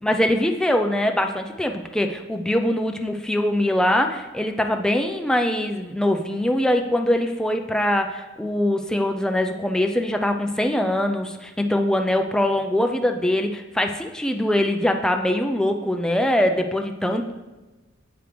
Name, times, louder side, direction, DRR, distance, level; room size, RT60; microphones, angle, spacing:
voice 1, 0.0-17.3, left 1 dB, 5° left, 4 dB, 0.4 m, -22 dB
9.0 x 3.2 x 5.0 m, 1.2 s
head